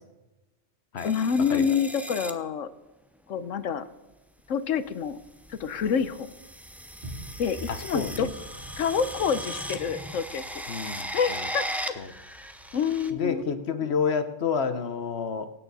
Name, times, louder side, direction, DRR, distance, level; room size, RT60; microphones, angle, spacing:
voice 1, 1.0-2.7 3.3-3.9 4.5-5.2 5.5-6.4 7.4-8.3 8.8-11.9 12.7-13.6, left 7 dB, 80° left, 13 dB, 1.2 m, -28 dB
sound 1, 1.0-2.3 3.6-3.9 4.9-13.1, equal, ahead, 0.6 m, -38 dB
sound 2, 7.0-13.4, right 1 dB, 50° right, 4.9 m, -47 dB
voice 2, 7.7-8.3 10.7-11.1 12.0-12.1 13.1-15.5, left 6 dB, 60° left, 9 dB, 1.2 m, -29 dB
24.0 x 9.1 x 4.1 m, 1.0 s
omnidirectional pair, 1.3 m